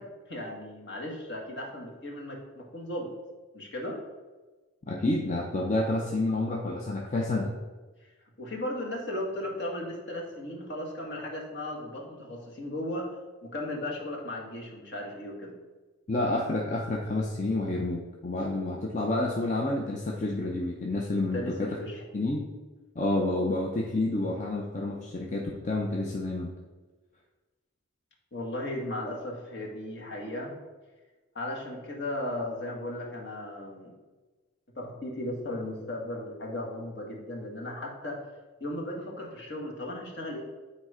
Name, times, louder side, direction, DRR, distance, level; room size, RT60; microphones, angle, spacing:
voice 1, 0.0-3.1 3.5-4.0 8.4-13.1 13.4-15.6 21.3-22.0 28.3-30.6 31.4-33.9 34.8-38.2 38.6-40.4, left 1 dB, 55° left, -1 dB, 1.7 m, -36 dB
voice 2, 4.9-7.5 16.1-21.7 22.1-22.5 23.0-26.5, left 2 dB, 35° left, 0 dB, 0.7 m, -29 dB
9.0 x 4.2 x 5.0 m, 1.3 s
head